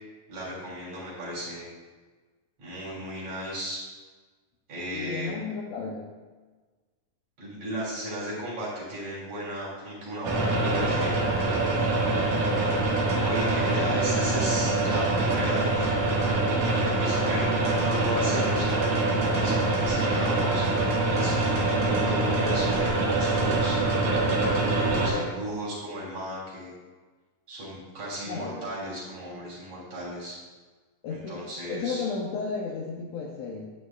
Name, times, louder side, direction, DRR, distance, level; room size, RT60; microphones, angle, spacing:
voice 1, 0.3-1.7 2.6-3.8 4.7-5.3 7.4-11.2 13.2-16.4 16.8-20.8 21.0-24.1 24.6-26.7 27.5-30.4 31.1-32.1, right 1 dB, 55° right, -6 dB, 4.4 m, -35 dB
voice 2, 4.9-6.1 28.2-28.7 31.0-33.7, left 5 dB, 75° left, -1 dB, 1.7 m, -33 dB
sound 1, 10.2-25.1, right 2 dB, 85° right, 3.2 m, -24 dB
11.5 x 8.9 x 2.4 m, 1.3 s
omnidirectional pair, 3.8 m